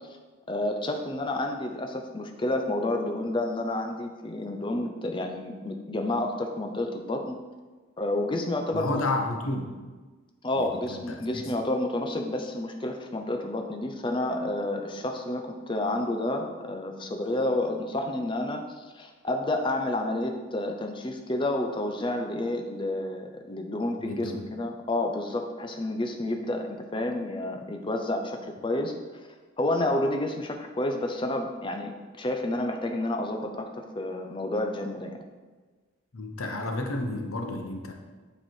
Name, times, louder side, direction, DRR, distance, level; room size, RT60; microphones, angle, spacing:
voice 1, 0.5-7.4 8.0-9.0 10.4-28.9 29.6-31.9 32.2-35.2, left 1 dB, 25° left, 4 dB, 0.6 m, -30 dB
voice 2, 8.7-9.7 10.6-11.4 24.0-24.5 36.1-37.9, left 2 dB, 90° left, 3 dB, 0.9 m, -31 dB
8.8 x 3.3 x 4.5 m, 1.3 s
head